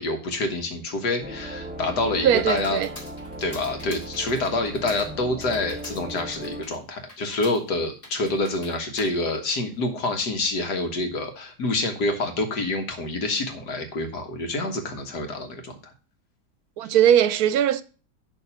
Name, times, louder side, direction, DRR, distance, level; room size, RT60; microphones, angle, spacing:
voice 1, 0.0-2.8 3.4-15.9, left 2 dB, 90° left, 2.1 m, -27 dB
sound 1, 1.2-6.6, right 1 dB, 5° right, 1.0 m, -37 dB
Computer keyboard, 1.5-10.1, left 1 dB, 35° left, 2.2 m, -47 dB
voice 2, 2.2-2.9 16.8-17.8, right 10 dB, 75° right, 1.1 m, -19 dB
11.0 x 4.0 x 5.7 m
omnidirectional pair, 1.7 m